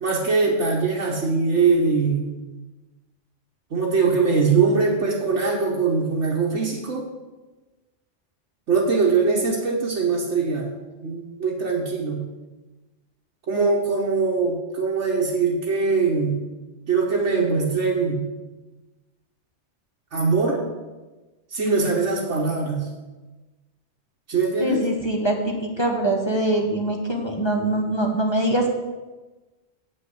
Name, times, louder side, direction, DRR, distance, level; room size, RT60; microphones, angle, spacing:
voice 1, 0.0-2.3 3.7-7.1 8.7-10.7 11.0-12.2 13.5-16.4 16.9-18.2 20.1-20.6 21.5-22.9 24.3-24.8, right 4 dB, 75° right, -2 dB, 1.5 m, -22 dB
voice 2, 24.6-28.7, right 1 dB, 25° left, 0 dB, 1.2 m, -23 dB
8.2 x 5.5 x 7.9 m, 1.2 s
omnidirectional pair, 1.2 m